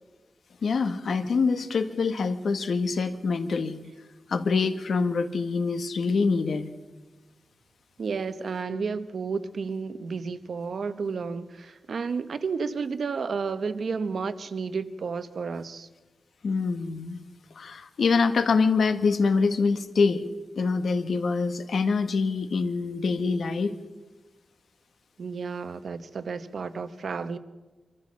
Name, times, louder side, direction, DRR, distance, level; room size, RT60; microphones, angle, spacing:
voice 1, 0.6-3.8 4.3-6.7 16.4-17.2 17.5-20.2 20.6-23.8, left 4 dB, 75° left, 1.4 m, -25 dB
voice 2, 8.0-15.9 25.2-27.4, right 5 dB, 65° right, 0.9 m, -32 dB
25.0 x 14.5 x 7.4 m
wide cardioid pair, 175°, 0 cm